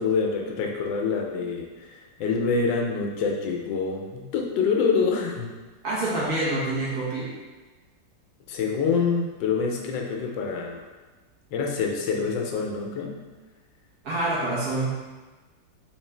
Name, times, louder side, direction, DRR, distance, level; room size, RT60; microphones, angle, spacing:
voice 1, 0.0-5.6 8.5-10.8 11.5-13.2, left 5 dB, 80° left, 1 dB, 1.3 m, -26 dB
voice 2, 5.8-7.3 14.0-14.9, right 2 dB, 60° right, -6 dB, 1.4 m, -26 dB
3.5 x 3.1 x 3.2 m, 1.3 s
omnidirectional pair, 2.0 m